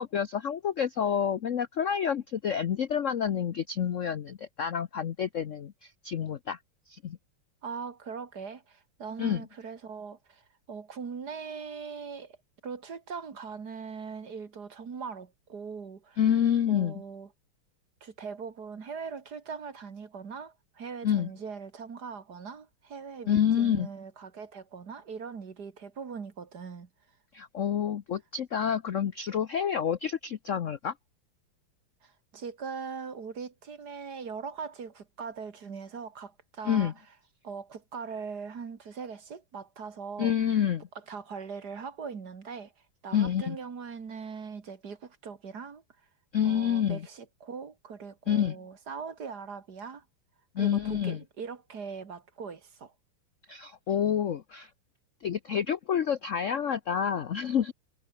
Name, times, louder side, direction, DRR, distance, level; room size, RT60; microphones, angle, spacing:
voice 1, 0.0-6.6 6.9-7.2 9.2-9.4 16.2-17.0 21.0-21.3 23.3-23.9 27.3-30.9 36.6-36.9 40.2-40.9 43.1-43.6 46.3-47.0 48.3-48.6 50.5-51.2 53.5-54.7 55.2-57.7, left 8 dB, 70° left, 0.7 m, -28 dB
voice 2, 7.6-12.4 12.6-16.2 16.7-17.3 18.0-26.9 32.0-36.9 37.4-40.3 41.1-42.7 43.0-45.8 46.4-50.0 50.6-52.9, right 5 dB, 50° right, 2.4 m, -41 dB
omnidirectional pair, 2.4 m